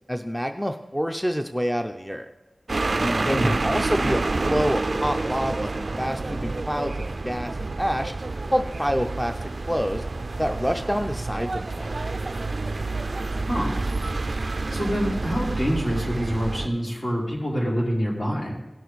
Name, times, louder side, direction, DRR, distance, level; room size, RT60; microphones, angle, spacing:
voice 1, 0.1-2.3 3.0-8.1 8.5-9.4 9.7-10.0 10.4-11.9, equal, 5° left, 6 dB, 0.5 m, -27 dB
sound 1, 2.7-16.7, right 3 dB, 55° right, 0.3 m, -28 dB
voice 2, 3.3-3.6 13.5-13.8 14.7-18.5, equal, 60° left, -5 dB, 4.2 m, -26 dB
17.5 x 6.5 x 4.0 m, 1.1 s
wide cardioid pair, 70°, 0 cm